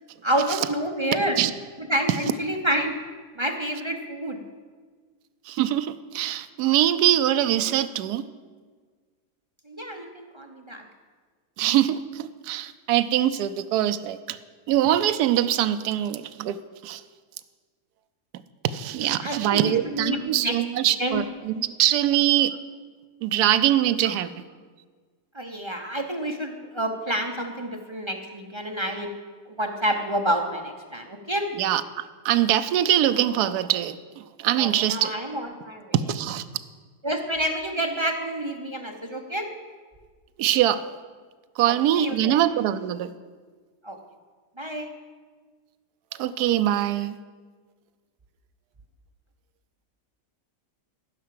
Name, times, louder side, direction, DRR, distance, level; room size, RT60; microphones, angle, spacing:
voice 1, 0.2-1.4 1.8-2.9 3.4-4.4 9.7-10.8 19.2-20.5 21.0-21.2 24.0-24.2 25.3-29.1 29.5-31.4 34.6-35.9 37.0-39.5 41.7-42.4 43.8-44.0 44.6-44.9, right 1 dB, 35° right, 2 dB, 0.4 m, -28 dB
voice 2, 5.5-8.2 11.6-14.4 14.7-16.6 16.8-17.0 18.7-22.5 23.2-24.3 31.6-35.1 35.9-36.4 40.4-41.0 41.6-43.1 46.2-47.2, right 12 dB, 75° right, 11 dB, 1.1 m, -23 dB
14.5 x 5.6 x 7.6 m, 1.5 s
omnidirectional pair, 1.8 m